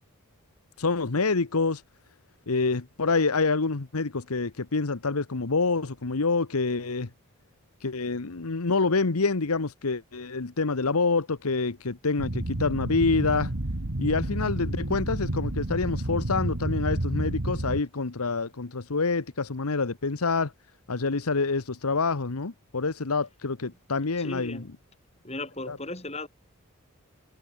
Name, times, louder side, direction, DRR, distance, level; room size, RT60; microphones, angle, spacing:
voice 1, 0.8-1.8 2.5-7.1 7.8-13.5 14.0-20.5 20.9-24.6 25.7-25.8, left 4 dB, 85° left, 1.1 m, -27 dB
sound 1, 12.2-17.8, right 1 dB, 65° right, 1.9 m, -30 dB
voice 2, 24.2-24.7 25.2-26.3, left 2 dB, 30° left, 6.9 m, -36 dB
head